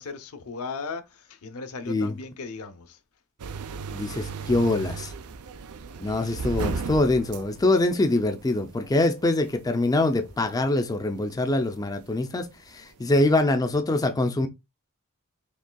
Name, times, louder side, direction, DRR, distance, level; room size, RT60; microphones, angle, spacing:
voice 1, 0.0-3.0, left 4 dB, 80° left, 0.7 m, -37 dB
sound 1, 3.4-13.3, right 4 dB, 85° right, 0.5 m, -37 dB
voice 2, 3.9-5.1 6.0-14.5, left 2 dB, 15° left, 0.4 m, -24 dB
5.2 x 3.2 x 2.2 m
head